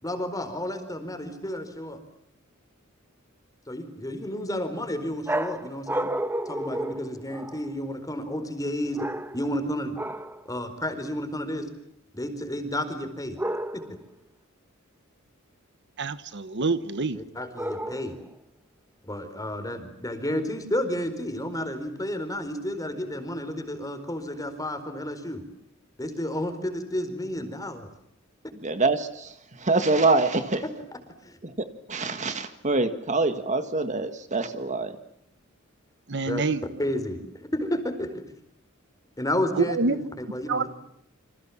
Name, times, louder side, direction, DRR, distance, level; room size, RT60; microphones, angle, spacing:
voice 1, 0.0-2.0 3.7-6.1 6.5-9.1 9.3-10.0 10.5-11.7 12.1-13.4 13.7-13.8 17.1-18.2 19.0-25.4 26.0-27.9 30.6-30.7 31.2-31.4 36.3-38.2 39.2-40.7, left 1 dB, 15° left, 8 dB, 4.5 m, -31 dB
sound 1, 5.3-7.8 8.9-9.6 10.0-10.4 13.4-14.0 17.6-18.3, right 1 dB, 10° right, 1.2 m, -31 dB
voice 2, 16.0-17.2 36.1-36.6 39.6-39.9 40.5-40.6, right 3 dB, 55° right, 13 dB, 1.1 m, -26 dB
voice 3, 28.6-30.6 31.4-35.0, right 3 dB, 35° right, 9 dB, 1.8 m, -25 dB
29.0 x 26.5 x 7.3 m, 0.75 s
head